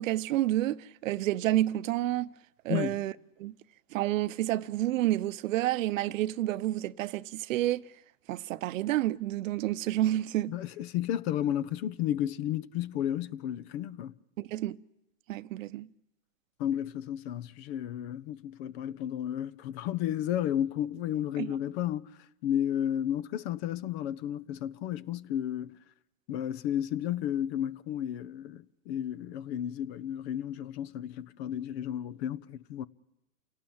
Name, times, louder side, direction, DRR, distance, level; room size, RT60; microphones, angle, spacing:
voice 1, 0.0-2.3 2.6-3.1 3.4-3.5 3.9-7.8 8.3-10.5 14.4-14.8 15.3-15.9 21.4-21.5, right 14 dB, 60° right, 0.9 m, -29 dB
voice 2, 10.5-14.1 16.6-25.8 26.3-32.9, left 11 dB, 45° left, 1.0 m, -32 dB
28.0 x 18.0 x 8.7 m
hypercardioid pair, 130°, 44 cm